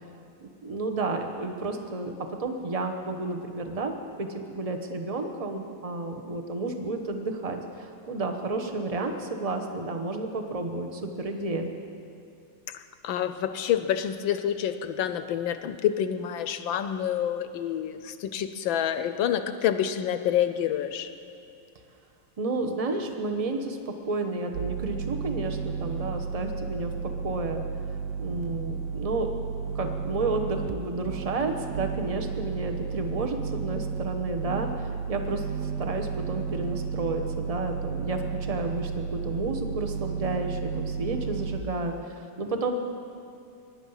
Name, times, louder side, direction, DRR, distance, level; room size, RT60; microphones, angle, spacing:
voice 1, 0.6-2.1 2.4-11.7 22.4-27.6 28.2-29.3 29.7-42.8, right 2 dB, 40° right, 4 dB, 0.5 m, -31 dB
voice 2, 12.7-21.1, left 10 dB, 75° left, 10 dB, 1.3 m, -28 dB
sound 1, 24.5-30.7 31.0-41.6, right 6 dB, 80° right, 0.9 m, -33 dB
23.5 x 10.5 x 5.6 m, 2.5 s
omnidirectional pair, 2.4 m